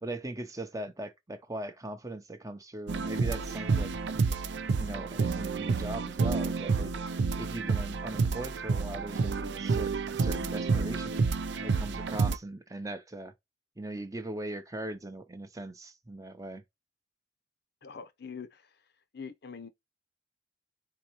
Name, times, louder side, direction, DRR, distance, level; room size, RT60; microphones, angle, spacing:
voice 1, 0.0-3.9 4.8-11.1 11.6-13.3 13.8-16.6, right 1 dB, 20° right, 0.6 m, -40 dB
sound 1, 2.9-12.4, right 4 dB, 75° right, 0.4 m, -29 dB
voice 2, 17.8-18.6 19.1-19.7, left 6 dB, 60° left, 0.6 m, -43 dB
4.4 x 3.8 x 2.9 m
head